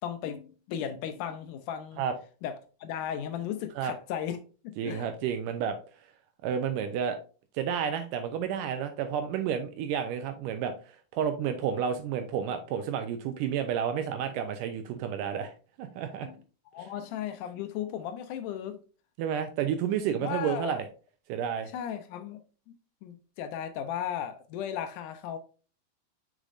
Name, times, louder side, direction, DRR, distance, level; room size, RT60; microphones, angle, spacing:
voice 1, 0.0-2.0 2.4-2.5 2.8-4.4 4.6-5.1 16.2-16.4 16.7-18.8 20.2-20.8 21.7-22.4 22.7-22.8 23.0-25.4, left 9 dB, 85° left, 1.8 m, -35 dB
voice 2, 4.8-5.8 6.4-7.2 7.5-15.5 15.8-16.3 19.2-20.9 21.3-21.7, right 8 dB, 85° right, 1.9 m, -31 dB
6.4 x 6.3 x 2.5 m
omnidirectional pair, 4.4 m